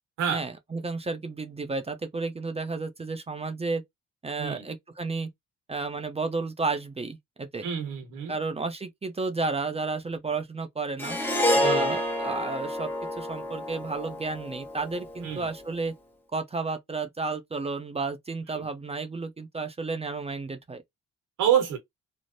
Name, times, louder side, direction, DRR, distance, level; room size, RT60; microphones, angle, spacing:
voice 1, 0.3-3.8 4.2-5.3 5.7-7.7 8.3-11.2 11.5-12.9 13.2-15.9 16.3-20.8, right 3 dB, 20° right, 0.5 m, -32 dB
voice 2, 7.6-8.4 11.6-12.0 15.2-15.5 18.5-18.7 21.4-21.8, right 9 dB, 90° right, 1.3 m, -27 dB
Harp, 11.0-15.4, left 1 dB, 5° left, 0.8 m, -28 dB
3.2 x 2.0 x 2.5 m
cardioid pair, 90°, 30 cm